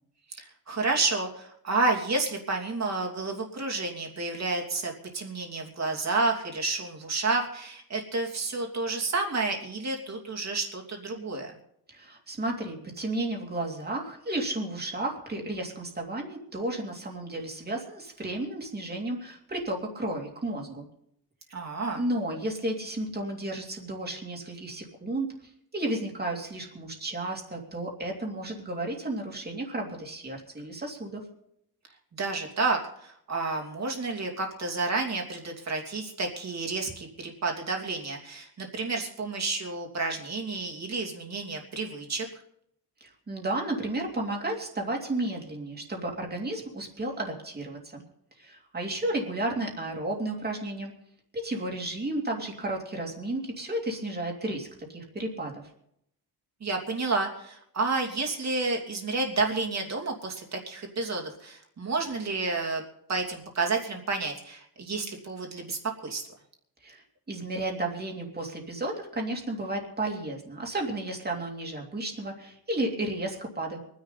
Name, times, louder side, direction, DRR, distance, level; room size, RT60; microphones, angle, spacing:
voice 1, 0.3-11.5 21.5-22.0 32.2-42.3 56.6-62.8 63.1-66.2, right 3 dB, 40° right, 1 dB, 2.8 m, -30 dB
voice 2, 11.9-20.9 21.9-25.3 25.7-31.2 43.0-48.0 48.4-50.9 51.3-55.5 66.8-73.8, right 1 dB, 25° right, 1 dB, 2.9 m, -33 dB
25.0 x 10.5 x 4.1 m, 0.73 s
wide cardioid pair, 170°, 40 cm